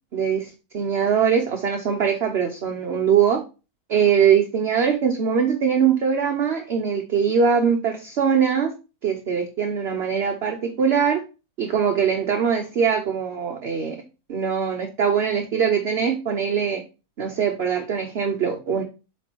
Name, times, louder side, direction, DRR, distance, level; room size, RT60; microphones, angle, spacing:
voice 1, 0.1-3.4 3.9-8.7 9.0-11.2 11.6-14.0 14.3-16.8 17.2-18.8, right 7 dB, 50° right, 4 dB, 0.9 m, -22 dB
7.6 x 3.3 x 4.5 m, 0.30 s
omnidirectional pair, 1.6 m